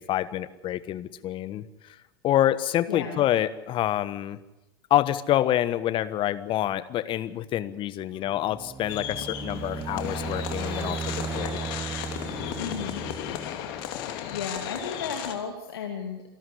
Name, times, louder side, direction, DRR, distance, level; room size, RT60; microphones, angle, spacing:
voice 1, 0.0-1.6 2.2-4.4 4.9-11.6, left 12 dB, 40° left, 14 dB, 1.4 m, -27 dB
voice 2, 2.9-3.3 12.6-13.1 14.3-16.2, left 6 dB, 80° left, 4 dB, 2.7 m, -34 dB
sound 1, 8.3-14.0, right 6 dB, 20° right, 0.6 m, -36 dB
sound 2, 8.9-15.3, left 11 dB, 60° left, 3.0 m, -35 dB
27.5 x 12.5 x 8.5 m, 0.95 s
hypercardioid pair, 85°, 13 cm